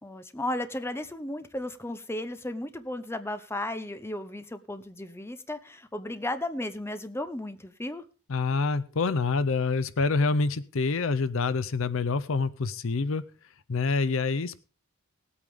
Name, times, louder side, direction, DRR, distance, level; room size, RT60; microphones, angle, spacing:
voice 1, 0.0-8.0, left 1 dB, 10° left, 10 dB, 0.7 m, -34 dB
voice 2, 8.3-13.2 13.7-14.6, left 4 dB, 60° left, 15 dB, 0.6 m, -26 dB
19.0 x 8.5 x 3.5 m, 0.35 s
head